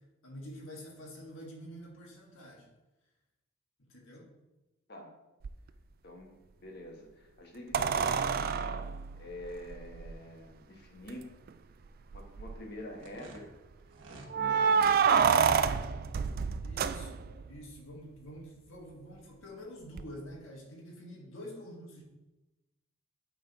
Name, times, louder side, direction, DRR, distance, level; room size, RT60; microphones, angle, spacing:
voice 1, 0.2-2.7 3.8-4.3 14.4-14.6 16.6-22.0, equal, 70° left, -1 dB, 1.6 m, -47 dB
sound 1, 5.4-5.5 7.7-10.1 11.1-11.2 11.5-11.6 12.1-12.6 14.3-17.5 20.0-20.1, right 6 dB, 45° right, 0.3 m, -28 dB
voice 2, 6.0-6.3 6.6-8.7 9.2-11.3 12.1-13.5 14.1-15.5, left 1 dB, 50° left, 1 dB, 1.3 m, -46 dB
sound 2, 12.9-14.3 14.7-15.1, right 2 dB, 70° right, 1.2 m, -51 dB
9.1 x 3.8 x 4.0 m, 1.0 s
head